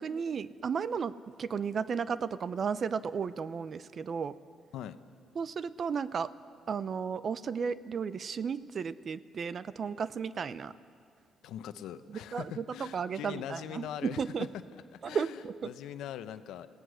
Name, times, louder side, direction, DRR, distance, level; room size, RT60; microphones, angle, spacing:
voice 1, 0.0-4.3 5.4-6.3 6.7-10.7 12.1-14.5 15.0-15.7, right 6 dB, 50° right, 16 dB, 0.7 m, -34 dB
voice 2, 11.4-16.7, left 10 dB, 85° left, 11 dB, 0.8 m, -42 dB
28.5 x 17.0 x 6.4 m, 2.3 s
cardioid pair, 90°, 0 cm